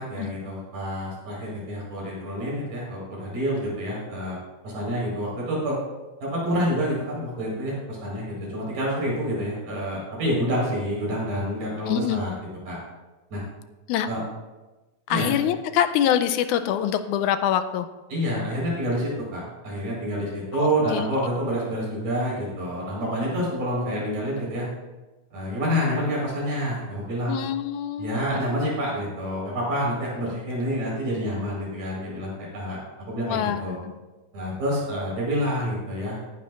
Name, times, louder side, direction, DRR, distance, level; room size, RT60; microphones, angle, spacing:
voice 1, 0.0-4.4 4.6-5.8 6.2-12.3 12.7-12.8 13.3-13.4 14.1-14.2 15.1-15.3 18.1-24.7 25.3-27.4 28.0-32.8 33.1-33.8 34.3-36.2, equal, 85° right, -5 dB, 6.0 m, -28 dB
voice 2, 11.9-12.2 13.9-14.1 15.1-17.9 20.5-21.0 27.3-28.2 33.2-33.9, left 10 dB, 85° left, 10 dB, 2.0 m, -25 dB
17.5 x 10.0 x 2.5 m, 1.1 s
omnidirectional pair, 3.5 m